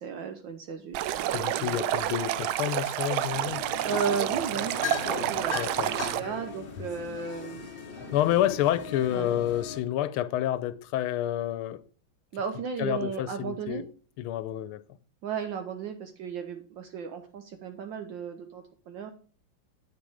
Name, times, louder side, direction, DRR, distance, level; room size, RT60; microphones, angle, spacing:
voice 1, 0.0-1.9 3.8-7.7 9.1-9.3 12.3-13.8 15.2-19.1, right 6 dB, 70° right, 1.4 m, -35 dB
Stream, 0.9-6.2, right 13 dB, 85° right, 1.4 m, -29 dB
voice 2, 1.3-3.6 5.5-5.9 8.1-11.8 12.8-13.9 14.2-14.8, left 12 dB, 90° left, 1.5 m, -29 dB
sound 1, 3.3-9.8, left 5 dB, 45° left, 0.7 m, -38 dB
8.4 x 6.8 x 4.9 m
omnidirectional pair, 2.3 m